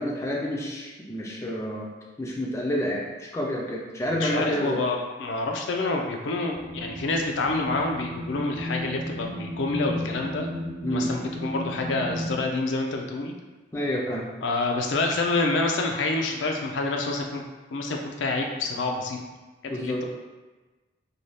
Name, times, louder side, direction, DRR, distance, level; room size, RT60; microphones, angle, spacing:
voice 1, 0.0-1.9 2.2-4.8 10.8-11.1 13.7-14.3 19.7-20.0, equal, 15° left, -3 dB, 0.3 m, -29 dB
voice 2, 4.0-10.5 10.9-13.4 14.4-17.4 17.7-19.2 19.6-20.1, left 3 dB, 85° left, 2 dB, 0.4 m, -27 dB
sound 1, 6.5-12.4, equal, 75° right, 0.7 m, -34 dB
2.6 x 2.3 x 3.2 m, 1.2 s
head